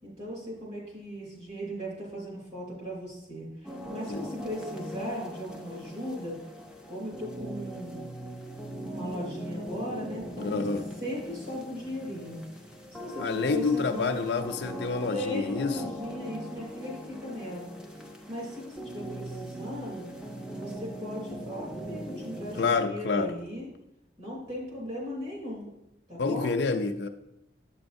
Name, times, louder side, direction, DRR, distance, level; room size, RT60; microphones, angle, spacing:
voice 1, 0.0-6.4 6.8-8.0 8.8-10.6 11.0-12.4 13.0-14.4 15.1-17.7 18.3-20.1 20.5-23.7 24.2-25.7 26.1-26.5, equal, 35° right, -4 dB, 3.0 m, -37 dB
sound 1, 3.6-22.7, equal, 5° right, 0.6 m, -40 dB
voice 2, 10.4-10.8 13.2-16.0 22.6-23.4 26.2-27.1, left 4 dB, 60° left, 7 dB, 0.4 m, -28 dB
8.5 x 6.9 x 2.6 m, 0.86 s
head